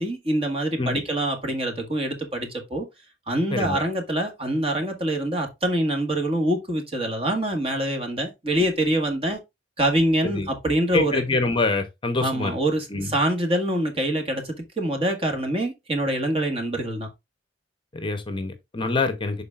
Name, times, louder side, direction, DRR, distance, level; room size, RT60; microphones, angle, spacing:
voice 1, 0.0-2.9 3.3-9.4 9.8-11.2 12.2-17.1, right 1 dB, 35° right, 1.6 m, -25 dB
voice 2, 3.5-3.8 10.3-10.5 10.9-12.6 12.9-13.1 17.9-19.4, left 3 dB, 30° left, 0.8 m, -25 dB
11.5 x 4.0 x 2.4 m
head